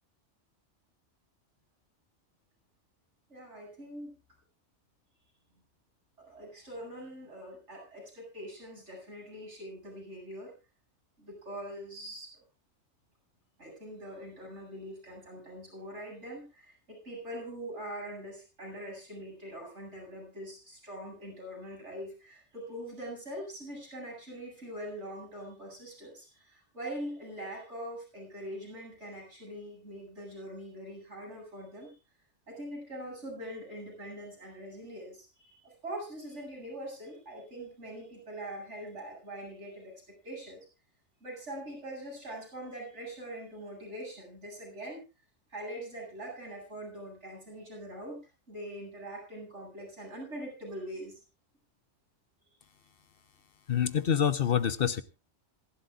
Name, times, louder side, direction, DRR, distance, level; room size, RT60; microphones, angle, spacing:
voice 1, 3.3-4.1 6.2-10.5 11.2-12.4 13.6-31.9 32.5-40.7 41.2-45.0 45.5-51.2, right 1 dB, 80° right, -1 dB, 8.5 m, -43 dB
voice 2, 53.7-55.0, left 8 dB, 55° left, 13 dB, 1.1 m, -26 dB
26.5 x 12.0 x 2.5 m, 0.29 s
omnidirectional pair, 1.2 m